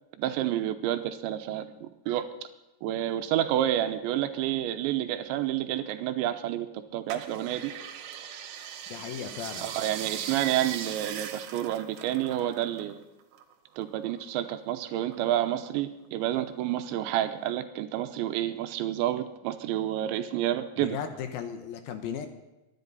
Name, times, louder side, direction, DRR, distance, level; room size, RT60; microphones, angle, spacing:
voice 1, 0.2-2.3 2.8-6.7 6.9-7.7 9.6-13.0 13.8-21.0, right 12 dB, 90° right, 9 dB, 3.2 m, -29 dB
sound 1, 7.1-12.9 13.2-14.5 15.0-15.8 16.3-16.4, right 9 dB, 70° right, 2.2 m, -39 dB
voice 2, 8.9-9.7 20.8-22.3, left 8 dB, 70° left, 7 dB, 2.4 m, -36 dB
23.0 x 11.0 x 4.1 m, 1.0 s
omnidirectional pair, 5.2 m